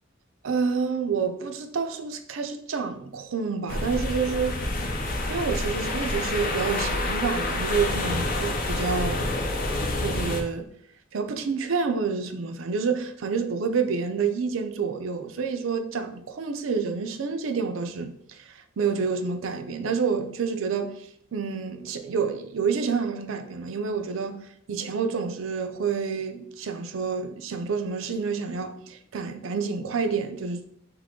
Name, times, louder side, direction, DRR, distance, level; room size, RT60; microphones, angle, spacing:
voice 1, 0.4-4.6 5.1-9.3 10.0-10.7 11.1-30.6, right 5 dB, 70° right, 0.5 m, -28 dB
sound 1, 3.7-10.4, left 2 dB, 45° left, 0.6 m, -28 dB
3.7 x 3.1 x 3.6 m
head